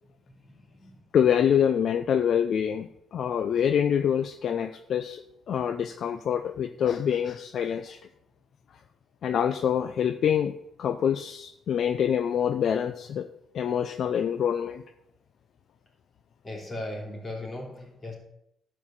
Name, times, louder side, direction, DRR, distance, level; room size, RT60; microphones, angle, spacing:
voice 1, 0.0-1.0 6.1-6.2 16.4-18.1, left 1 dB, 30° left, 0 dB, 3.4 m, -39 dB
voice 2, 1.1-5.2 5.5-8.0 9.2-13.3 13.5-14.8, left 8 dB, 60° left, 9 dB, 0.5 m, -26 dB
12.0 x 4.7 x 7.5 m, 0.79 s
cardioid pair, 90°, 0 cm